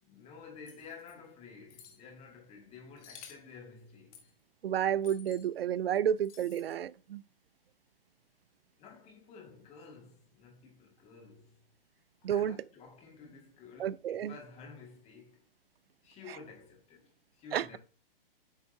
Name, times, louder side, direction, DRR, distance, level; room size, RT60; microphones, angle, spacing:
voice 1, 0.0-4.3 8.8-11.7 12.2-15.4 16.0-17.8, left 5 dB, 20° left, 2.1 m, -52 dB
sound 1, 0.7-1.1 1.7-2.0 3.0-3.5 4.1-4.3 5.0-5.5 6.2-6.7, left 8 dB, 40° left, 1.5 m, -53 dB
voice 2, 4.6-7.2 12.2-12.6 13.8-14.3 16.3-16.4 17.5-17.8, right 9 dB, 85° right, 0.5 m, -31 dB
8.3 x 5.7 x 2.8 m
hypercardioid pair, 140°, 29 cm